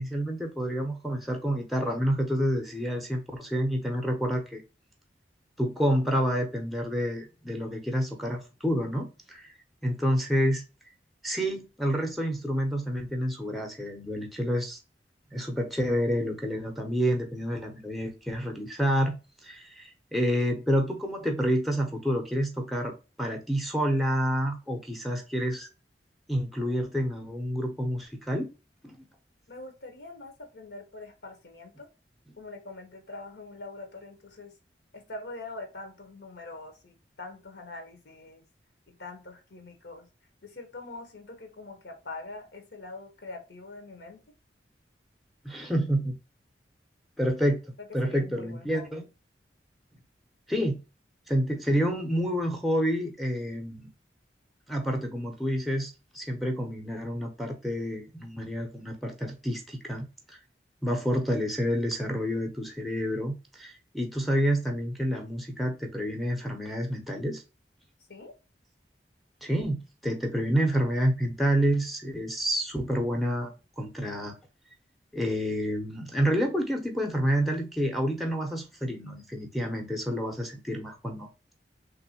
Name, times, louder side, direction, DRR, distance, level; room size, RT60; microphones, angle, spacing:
voice 1, 0.0-4.6 5.6-9.5 9.8-10.6 11.2-14.8 15.3-19.1 19.4-25.7 26.3-28.5 28.8-29.0 45.4-46.1 47.2-47.6 47.9-49.1 50.5-50.8 51.3-53.9 54.7-60.4 60.8-67.4 69.4-74.3 75.1-81.3, equal, ahead, 0.6 m, -28 dB
voice 2, 29.5-31.9 32.4-34.5 34.9-38.4 38.9-40.1 40.4-44.2 48.0-49.0 68.1-68.3, left 2 dB, 75° left, 0.8 m, -43 dB
3.5 x 2.6 x 2.7 m
head